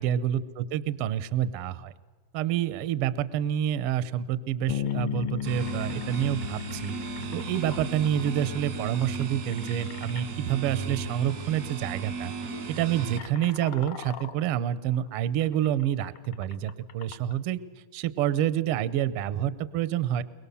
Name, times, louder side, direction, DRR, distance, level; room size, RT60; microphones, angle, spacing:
voice 1, 0.0-1.9 2.3-7.0 7.3-12.3 12.7-17.6 17.9-20.2, right 10 dB, 80° right, 15 dB, 1.3 m, -28 dB
Bass guitar, 4.7-14.3, left 9 dB, 85° left, 1.2 m, -38 dB
sound 1, 4.8-10.3 11.3-11.5 11.8-12.0 12.6-17.4, left 9 dB, 65° left, 2.1 m, -47 dB
sound 2, 5.4-13.2, right 4 dB, 60° right, 0.9 m, -36 dB
22.5 x 22.0 x 6.9 m, 1.4 s
omnidirectional pair, 3.6 m